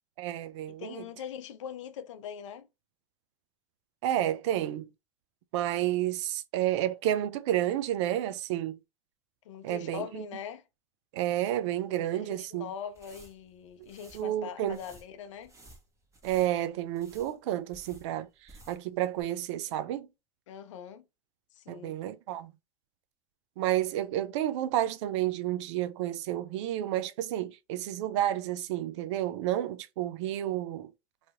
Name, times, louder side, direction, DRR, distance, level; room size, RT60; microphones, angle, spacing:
voice 1, 0.2-1.0 4.0-4.9 5.5-8.8 9.6-10.2 11.1-12.7 14.1-14.8 16.2-20.1 21.7-22.5 23.6-30.9, right 12 dB, 70° right, 0.5 m, -30 dB
voice 2, 0.7-2.7 9.4-10.6 12.0-15.5 20.5-21.0 21.5-22.0, left 8 dB, 80° left, 0.5 m, -42 dB
sound 1, 12.8-18.9 19.2-19.3, right 1 dB, 20° right, 1.2 m, -56 dB
3.2 x 2.7 x 2.5 m
hypercardioid pair, 95°, 16 cm